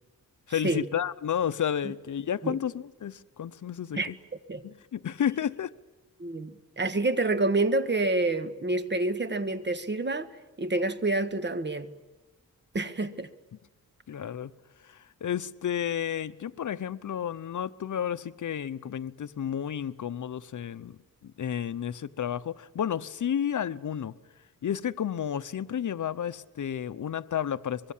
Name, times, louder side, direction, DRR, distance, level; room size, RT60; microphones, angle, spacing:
voice 1, 0.5-4.1 4.6-5.7 14.1-14.5 14.8-21.0 21.2-24.1 24.6-27.9, left 9 dB, 60° left, 0.8 m, -31 dB
voice 2, 6.2-10.3 10.6-11.9 12.7-13.3, right 2 dB, 30° right, 1.6 m, -28 dB
24.5 x 22.5 x 7.3 m
wide cardioid pair, 100°, 34 cm